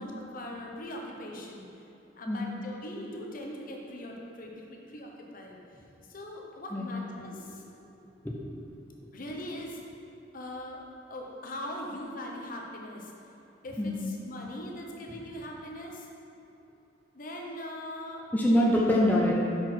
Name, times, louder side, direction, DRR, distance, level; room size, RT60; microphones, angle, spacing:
voice 1, 0.0-1.7 2.1-5.6 6.1-7.6 9.1-9.8 10.3-10.8 11.1-13.1 13.6-16.1 17.1-18.2 18.5-18.9, left 1 dB, 50° left, 0 dB, 0.8 m, -41 dB
voice 2, 8.2-8.7 13.8-14.0 18.3-19.3, left 1 dB, 10° left, -4 dB, 0.6 m, -25 dB
5.8 x 4.8 x 4.4 m, 3.0 s
head